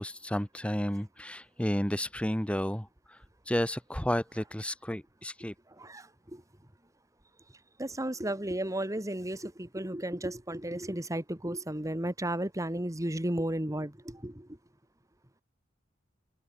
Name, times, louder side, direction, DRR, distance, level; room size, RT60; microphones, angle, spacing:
voice 1, 0.0-3.2 3.5-5.5, equal, 5° left, 1.5 m, -32 dB
voice 2, 5.8-6.4 7.8-14.5, right 1 dB, 15° right, 2.1 m, -34 dB
open air
head